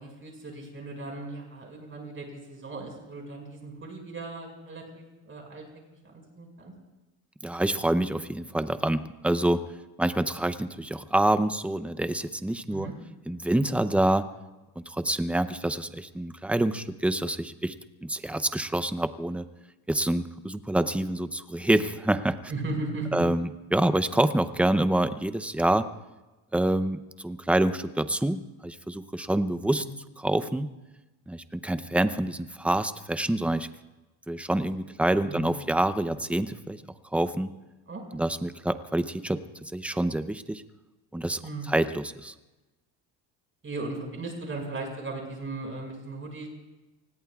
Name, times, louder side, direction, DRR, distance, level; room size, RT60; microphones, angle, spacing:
voice 1, 0.0-5.6 6.1-6.7 12.7-12.9 22.5-23.1 29.7-29.9 35.2-35.7 37.9-38.2 41.4-41.7 43.6-46.5, right 2 dB, 30° right, 1 dB, 5.5 m, -37 dB
voice 2, 7.4-9.6 10.0-12.9 13.3-14.3 14.8-17.7 18.0-19.4 19.9-22.4 23.1-25.9 26.5-29.8 30.2-30.7 31.3-33.7 34.3-36.8 37.1-37.5 38.1-39.4 39.7-40.6 41.1-41.4 41.7-42.3, right 1 dB, 5° right, 12 dB, 0.6 m, -26 dB
30.0 x 20.0 x 2.4 m, 1.1 s
cardioid pair, 120°, 44 cm